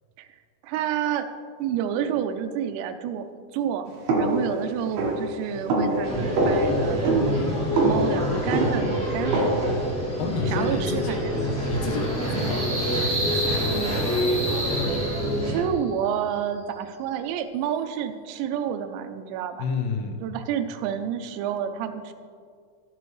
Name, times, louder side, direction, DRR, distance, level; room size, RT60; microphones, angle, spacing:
voice 1, 0.6-1.3 1.6-7.4 7.8-9.5 10.5-11.4 12.3-12.6 13.7-14.1 15.5-19.6 20.2-22.1, right 9 dB, 80° right, 7 dB, 2.8 m, -29 dB
sound 1, 4.1-9.8, right 2 dB, 65° right, 2.9 m, -25 dB
sound 2, 6.0-15.6, equal, 5° left, 0.8 m, -27 dB
sound 3, 9.8-15.7, right 1 dB, 50° right, 4.7 m, -32 dB
voice 2, 10.2-11.2 11.7-13.6 19.6-20.2, left 4 dB, 75° left, 4 dB, 2.1 m, -30 dB
16.5 x 7.7 x 3.2 m, 2.1 s
omnidirectional pair, 5.3 m